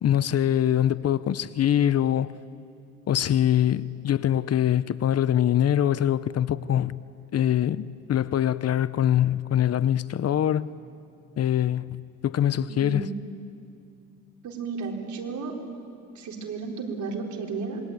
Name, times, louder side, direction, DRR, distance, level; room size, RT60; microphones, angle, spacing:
voice 1, 0.0-2.4 3.1-6.9 7.3-10.7 11.4-11.9 12.2-13.1, left 10 dB, 55° left, 0.8 m, -23 dB
voice 2, 12.7-13.2 14.4-15.5 16.1-17.8, right 4 dB, 70° right, 4.4 m, -33 dB
27.0 x 22.5 x 9.5 m
cardioid pair, 90°, 30 cm